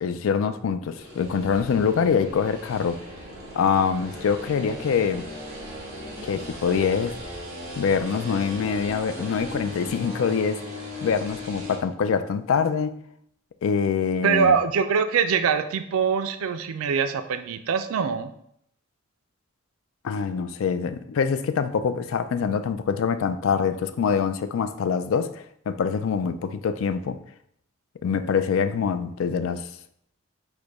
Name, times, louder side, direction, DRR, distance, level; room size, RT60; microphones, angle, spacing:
voice 1, 0.0-3.0 3.5-5.2 6.2-7.2 7.8-10.6 11.0-13.0 13.6-14.5 20.0-25.3 25.7-27.2 28.0-29.7, left 6 dB, 75° left, 0.3 m, -24 dB
sound 1, 1.0-11.8, left 1 dB, 30° right, 1.7 m, -38 dB
voice 2, 14.2-18.3, right 6 dB, 90° right, 0.4 m, -23 dB
4.9 x 2.2 x 4.7 m
head